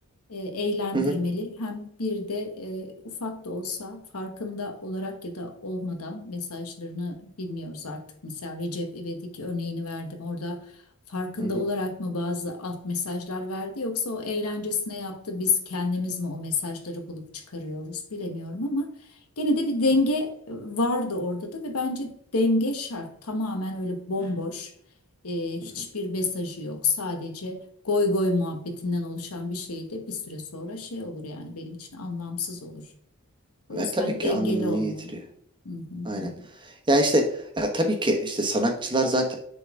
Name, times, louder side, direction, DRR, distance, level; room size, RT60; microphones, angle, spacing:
voice 1, 0.3-10.6 11.1-18.9 19.4-24.7 25.2-32.8 33.7-35.1 35.6-36.5, left 2 dB, 80° left, 1.3 m, -30 dB
voice 2, 33.7-35.2 36.0-36.3 36.9-39.3, right 1 dB, 20° right, 1.1 m, -25 dB
6.6 x 4.0 x 3.7 m
head